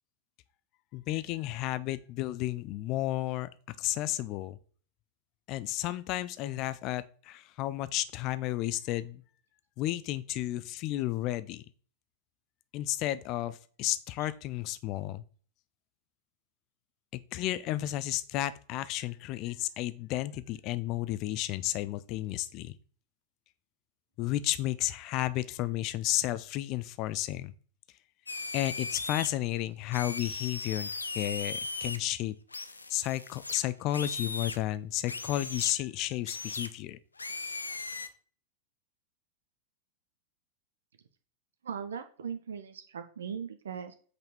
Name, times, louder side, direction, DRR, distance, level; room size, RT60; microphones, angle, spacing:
voice 1, 0.9-3.5 3.8-4.6 5.5-9.2 9.8-11.6 12.7-15.2 17.1-22.7 24.2-27.5 28.5-32.3 32.9-37.0, left 15 dB, 40° left, 15 dB, 0.7 m, -32 dB
sound 1, 28.3-29.3 29.9-32.0 32.5-34.6 35.1-35.7 36.3-36.7 37.2-38.1, left 3 dB, 80° left, 0.7 m, -37 dB
voice 2, 41.6-43.9, right 7 dB, 65° right, 8 dB, 1.0 m, -39 dB
8.2 x 5.2 x 4.3 m, 0.42 s
figure-of-eight pair, 90°, 0 cm